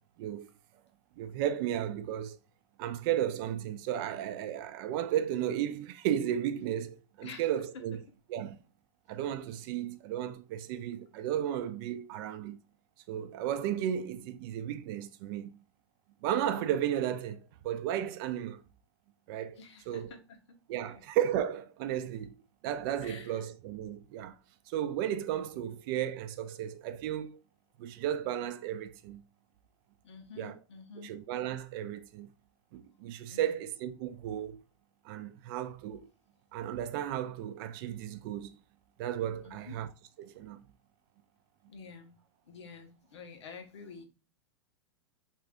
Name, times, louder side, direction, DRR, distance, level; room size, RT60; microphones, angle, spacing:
voice 1, 0.2-0.5 1.2-2.4 2.8-8.0 8.3-8.6 9.1-12.6 13.1-15.5 16.2-18.6 19.3-20.1 20.7-22.3 22.6-24.4 24.7-27.4 27.8-29.2 30.4-30.6 31.0-32.3 32.7-34.6 35.0-36.1 36.5-38.5 39.0-39.9 40.2-40.6, right 10 dB, 50° right, 0.4 m, -34 dB
voice 2, 19.6-20.4 20.7-21.0 23.0-23.4 30.0-31.1 31.9-32.0 33.3-33.6 39.4-39.8 41.7-42.1 42.5-44.0, left 5 dB, 75° left, 0.9 m, -49 dB
2.6 x 2.3 x 3.5 m
hypercardioid pair, 115°, 15 cm